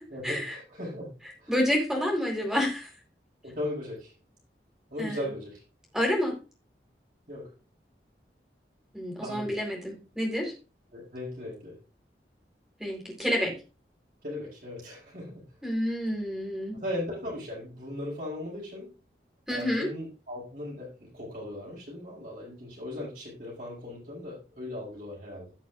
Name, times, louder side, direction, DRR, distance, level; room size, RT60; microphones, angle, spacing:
voice 1, 0.1-1.1 1.4-1.5 3.4-4.1 4.9-5.6 7.3-7.5 9.2-9.6 10.9-11.8 14.2-15.5 16.7-18.9 19.5-25.5, left 1 dB, 55° right, -7 dB, 6.1 m, -38 dB
voice 2, 1.5-2.9 5.0-5.2 5.9-6.3 8.9-10.5 12.8-13.5 15.6-16.8 19.5-19.9, equal, 5° right, -1 dB, 3.9 m, -28 dB
17.5 x 6.1 x 2.5 m, 0.32 s
head